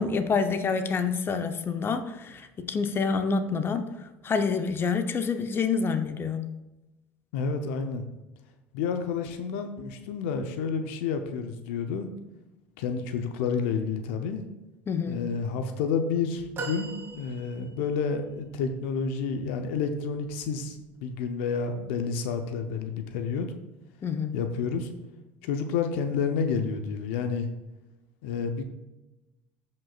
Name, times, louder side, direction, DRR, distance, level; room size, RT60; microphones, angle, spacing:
voice 1, 0.0-3.9 4.2-6.5 14.9-15.3 24.0-24.4, left 5 dB, 35° left, 8 dB, 0.8 m, -27 dB
voice 2, 7.3-8.1 8.7-12.1 12.8-14.4 15.1-23.5 24.3-24.9 25.4-27.5 28.2-28.6, left 5 dB, 75° left, 7 dB, 0.7 m, -30 dB
sound 1, 16.6-18.0 18.7-18.8, right 3 dB, 35° right, 2.3 m, -38 dB
14.0 x 5.4 x 2.4 m, 1.0 s
hypercardioid pair, 75°, 7 cm